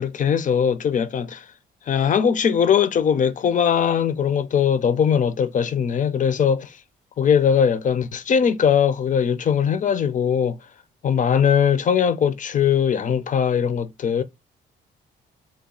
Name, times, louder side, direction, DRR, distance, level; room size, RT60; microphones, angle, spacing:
voice 1, 0.0-1.4 1.9-6.7 7.2-10.6 11.0-14.2, left 7 dB, 40° left, 0.4 m, -20 dB
2.9 x 2.2 x 3.7 m
cardioid pair, 90°, 20 cm